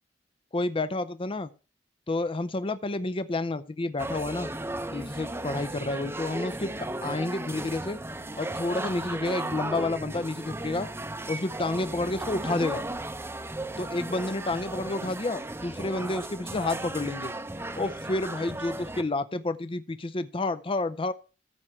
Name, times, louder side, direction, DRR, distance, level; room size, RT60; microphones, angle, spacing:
voice 1, 0.5-1.5 2.1-4.5 4.9-8.0 8.4-10.9 11.3-12.8 13.8-17.3 17.8-21.1, left 2 dB, 30° left, 0.6 m, -30 dB
sound 1, 4.0-19.0, right 1 dB, 15° right, 0.8 m, -35 dB
14.5 x 7.2 x 3.2 m
head